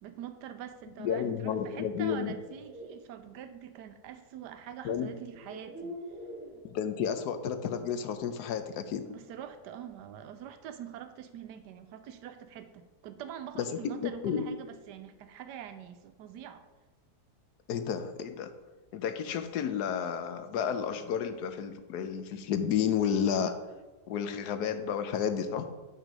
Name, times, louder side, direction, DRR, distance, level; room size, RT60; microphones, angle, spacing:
voice 1, 0.0-5.9 9.1-16.6, right 9 dB, 85° right, 10 dB, 1.2 m, -44 dB
voice 2, 1.0-2.3 4.8-5.1 6.6-9.0 13.8-14.5 17.7-18.5 18.9-23.5 24.1-25.7, left 8 dB, 75° left, 9 dB, 1.2 m, -31 dB
sound 1, 1.8-3.0 4.4-4.5 5.2-6.6, equal, 10° right, 2.1 m, -45 dB
9.0 x 4.5 x 5.2 m, 1.2 s
omnidirectional pair, 1.8 m